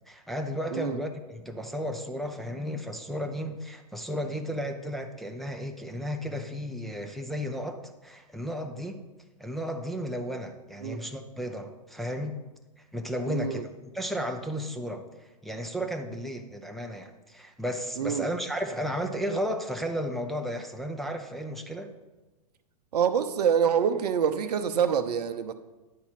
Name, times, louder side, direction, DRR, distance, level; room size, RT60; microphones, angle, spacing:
voice 1, 0.0-9.0 9.4-12.4 12.9-13.6 13.9-15.0 15.4-21.9, equal, ahead, 0.6 m, -33 dB
voice 2, 13.3-13.6 18.0-18.3 22.9-25.5, right 7 dB, 75° right, 0.7 m, -26 dB
9.6 x 4.2 x 5.8 m
hypercardioid pair, 115°, 21 cm